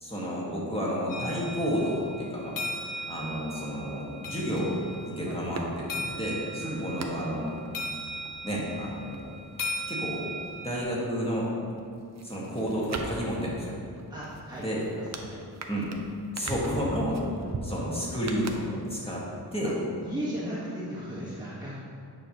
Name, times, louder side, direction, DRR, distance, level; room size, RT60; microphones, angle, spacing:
voice 1, 0.0-2.6 2.9-7.5 8.4-9.4 9.9-10.3 10.6-11.5 12.2-13.8 14.6-14.9 15.7-15.9 16.3-17.2 17.6-19.2 19.5-19.8, equal, 15° left, -5 dB, 1.6 m, -31 dB
old clock bell, 1.1-10.8, equal, 55° left, 0.8 m, -38 dB
sound 1, 4.4-10.9 11.2-19.2 19.5-19.6, right 3 dB, 45° right, 0.6 m, -43 dB
voice 2, 6.6-6.9 14.1-14.7 14.9-15.4 17.3-17.6 19.6-19.7 20.0-21.9, right 1 dB, 10° right, -9 dB, 1.3 m, -36 dB
8.9 x 6.1 x 2.9 m, 2.4 s
wide cardioid pair, 125°, 40 cm